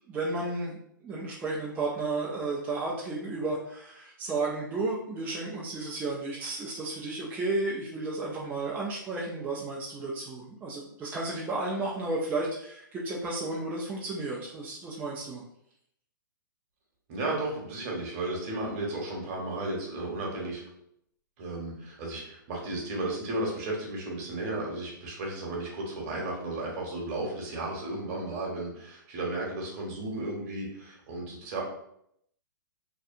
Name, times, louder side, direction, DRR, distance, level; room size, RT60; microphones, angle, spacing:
voice 1, 0.1-15.4, right 2 dB, 15° right, -4 dB, 0.4 m, -33 dB
voice 2, 17.1-20.6 21.4-31.6, right 2 dB, 45° right, -1 dB, 1.0 m, -34 dB
2.7 x 2.3 x 2.5 m, 0.73 s
hypercardioid pair, 130°, 11 cm